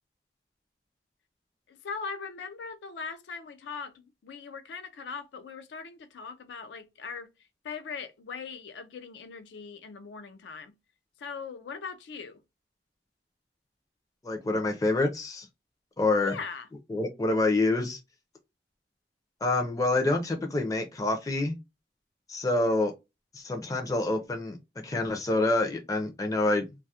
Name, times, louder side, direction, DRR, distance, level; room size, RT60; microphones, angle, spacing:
voice 1, 1.7-7.3 7.6-10.8 11.2-12.4 16.2-16.7, left 5 dB, 85° left, 0.4 m, -40 dB
voice 2, 14.2-15.5 16.0-16.4 16.9-18.0 19.4-21.6 22.3-22.9 23.3-24.6 24.8-26.7, left 2 dB, 20° left, 0.4 m, -27 dB
2.3 x 2.0 x 2.6 m
head